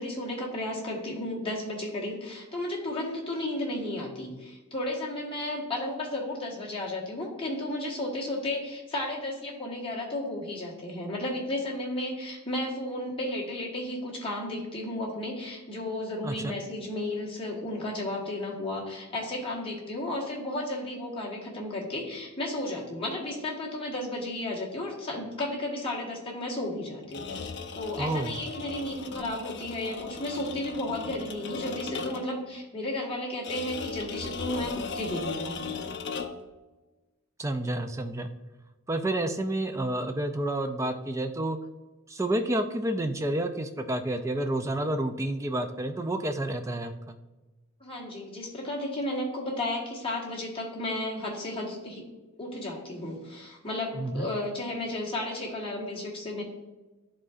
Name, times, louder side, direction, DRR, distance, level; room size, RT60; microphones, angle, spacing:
voice 1, 0.0-27.3 27.7-35.5 47.8-52.1 52.4-56.4, left 1 dB, 25° left, -4 dB, 1.4 m, -33 dB
voice 2, 16.2-16.5 28.0-28.4 37.4-38.3 38.9-41.6 42.1-47.2 54.0-54.3, right 1 dB, 15° right, 7 dB, 0.3 m, -29 dB
sound 1, 27.0-32.4 33.4-36.5, left 5 dB, 50° left, 0.5 m, -37 dB
11.0 x 3.7 x 2.5 m, 1.2 s
head